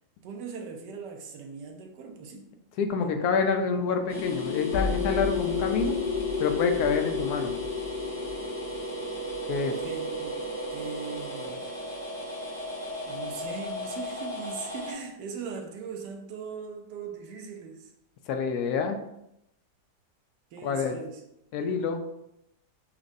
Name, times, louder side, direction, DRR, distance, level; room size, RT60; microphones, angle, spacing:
voice 1, 0.2-2.5 3.0-3.2 9.6-11.7 13.1-17.9 20.5-21.2, right 5 dB, 85° right, 4 dB, 1.2 m, -40 dB
voice 2, 2.8-5.9 6.4-7.5 9.5-9.7 18.3-19.0 20.6-20.9 21.5-22.0, left 5 dB, 75° left, 5 dB, 1.0 m, -27 dB
sound 1, 2.9-13.9, left 2 dB, 55° left, 1.6 m, -40 dB
sound 2, 4.1-14.9, left 3 dB, 35° left, 1.3 m, -33 dB
6.1 x 2.5 x 2.6 m, 0.82 s
omnidirectional pair, 1.8 m